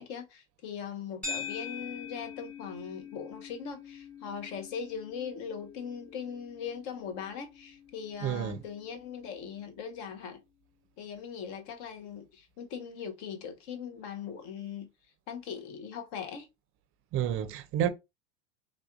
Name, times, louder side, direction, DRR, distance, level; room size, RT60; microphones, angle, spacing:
voice 1, 0.0-10.4 11.0-14.9 15.3-16.5, left 7 dB, 55° left, 0.9 m, -40 dB
sound 1, 1.2-9.7, left 6 dB, 5° left, 1.3 m, -44 dB
voice 2, 8.2-8.6 17.1-17.9, right 10 dB, 35° right, 0.5 m, -29 dB
3.4 x 2.5 x 2.4 m
supercardioid pair, 105°, 37 cm